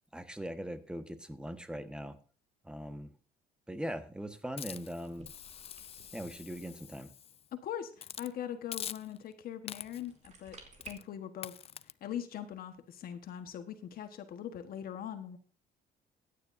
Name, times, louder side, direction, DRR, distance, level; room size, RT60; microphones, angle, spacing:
voice 1, 0.1-2.2 2.6-3.1 3.7-5.3 6.1-7.1, equal, 5° right, 9 dB, 1.3 m, -40 dB
Hiss, 4.6-7.5 8.0-8.3 8.7-9.3 9.7-10.1 10.8-11.1 11.4-11.9, left 9 dB, 35° left, 0.4 m, -45 dB
sound 1, 5.0-7.2 9.9-10.9, right 4 dB, 45° right, 3.1 m, -55 dB
voice 2, 7.5-10.6 10.8-11.7 12.0-15.4, left 10 dB, 60° left, 8 dB, 1.3 m, -41 dB
16.0 x 9.9 x 2.6 m, 0.39 s
cardioid pair, 110°, 17 cm